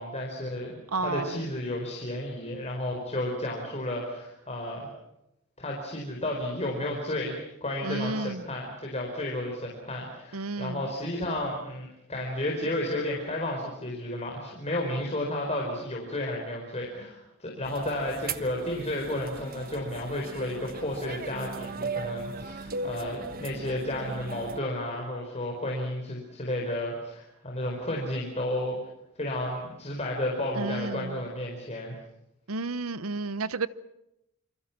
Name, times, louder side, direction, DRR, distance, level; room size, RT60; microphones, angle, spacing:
voice 1, 0.0-4.9 5.6-28.8 29.2-31.9, left 1 dB, 30° left, -1 dB, 4.7 m, -32 dB
voice 2, 0.9-1.4 7.8-8.4 10.3-10.9 30.6-31.3 32.5-33.7, right 3 dB, 80° right, 17 dB, 0.9 m, -32 dB
sound 1, 17.6-24.6, right 3 dB, 45° right, 1.2 m, -38 dB
28.0 x 25.5 x 6.1 m, 0.85 s
head